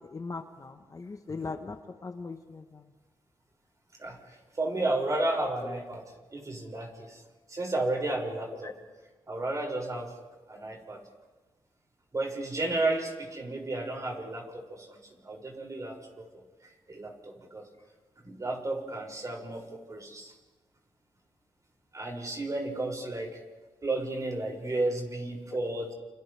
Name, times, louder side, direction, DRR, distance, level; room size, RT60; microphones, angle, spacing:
voice 1, 0.1-2.9 5.6-5.8 8.6-8.7, left 4 dB, 35° left, 6 dB, 1.2 m, -39 dB
voice 2, 4.6-6.0 6.3-7.2 7.5-8.7 9.3-10.1 10.5-11.0 12.1-16.2 16.9-17.6 18.2-20.3 21.9-23.3 23.8-25.9, right 2 dB, 35° right, -1 dB, 6.6 m, -32 dB
29.5 x 29.0 x 3.5 m, 1.3 s
cardioid pair, 75°, 9 cm